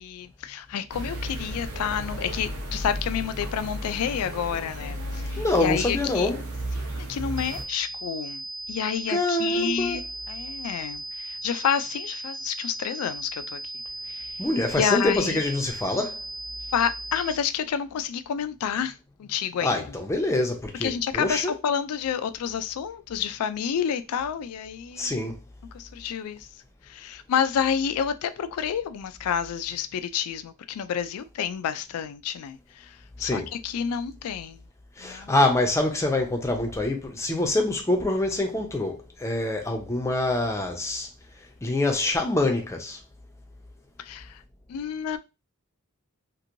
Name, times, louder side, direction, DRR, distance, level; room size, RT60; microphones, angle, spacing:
voice 1, 0.0-6.3 6.8-8.4 8.7-13.6 14.1-14.3 14.7-15.4 16.7-18.9 19.2-19.8 20.8-25.2 25.7-26.5 26.9-32.9 33.2-34.6 35.0-35.4 44.1-44.3 44.7-45.2, left 8 dB, 85° left, 0.3 m, -29 dB
sound 1, 0.9-7.6, right 1 dB, 75° right, 0.8 m, -34 dB
voice 2, 5.4-6.4 9.1-10.0 14.4-16.1 19.6-21.5 25.0-25.3 33.2-33.5 35.0-41.1 41.6-43.0, left 2 dB, 15° left, 0.5 m, -25 dB
sound 2, 7.4-17.4, right 2 dB, 40° right, 0.5 m, -37 dB
2.9 x 2.6 x 2.5 m
head